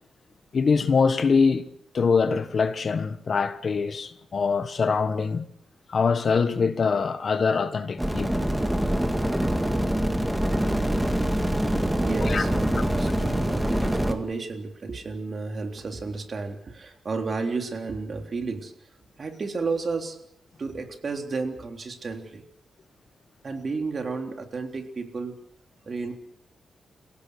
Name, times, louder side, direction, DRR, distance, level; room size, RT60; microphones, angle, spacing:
voice 1, 0.5-1.7 1.9-5.5 5.9-8.4 12.2-12.5, left 5 dB, 45° left, 1.4 m, -23 dB
sound 1, 8.0-14.1, right 1 dB, 5° right, 2.2 m, -24 dB
voice 2, 12.0-18.7 19.2-20.2 20.6-22.4 23.4-25.3 25.9-26.2, right 4 dB, 40° right, 3.7 m, -32 dB
30.0 x 17.0 x 6.5 m
wide cardioid pair, 125°, 0 cm